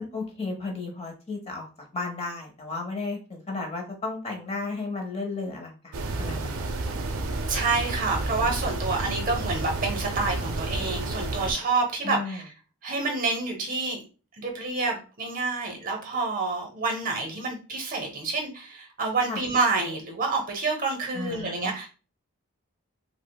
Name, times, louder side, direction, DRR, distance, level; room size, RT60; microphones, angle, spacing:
voice 1, 0.0-1.7 1.9-6.7 12.0-12.4 19.3-19.4 21.1-21.7, left 3 dB, 25° left, 2 dB, 0.7 m, -34 dB
sound 1, 5.9-11.5, right 2 dB, 70° right, 0.5 m, -30 dB
voice 2, 7.5-12.4 12.8-14.0 14.4-21.9, right 3 dB, 40° right, 3 dB, 0.8 m, -28 dB
4.9 x 2.0 x 2.2 m, 0.35 s
head